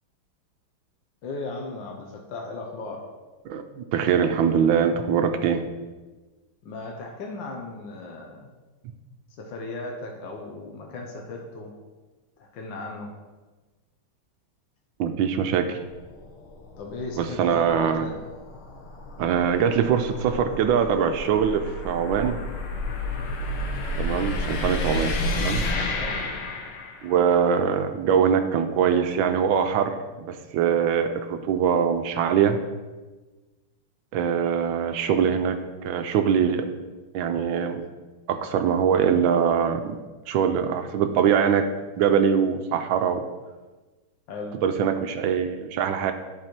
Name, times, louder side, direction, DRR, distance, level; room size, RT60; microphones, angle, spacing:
voice 1, 1.2-3.1 6.6-8.5 9.4-11.7 12.4-13.1 16.8-18.2 25.9-26.3 44.3-44.6, left 3 dB, 65° left, 1 dB, 1.5 m, -36 dB
voice 2, 3.9-5.6 15.0-15.8 17.2-18.1 19.2-22.4 24.0-25.6 27.0-30.0 30.2-32.6 34.1-36.7 37.1-37.8 38.3-40.0 40.3-43.2 44.6-46.1, right 7 dB, 80° right, 7 dB, 1.3 m, -23 dB
sound 1, 15.8-27.2, left 1 dB, 85° left, 1.7 m, -31 dB
11.0 x 4.7 x 4.4 m, 1.2 s
omnidirectional pair, 2.3 m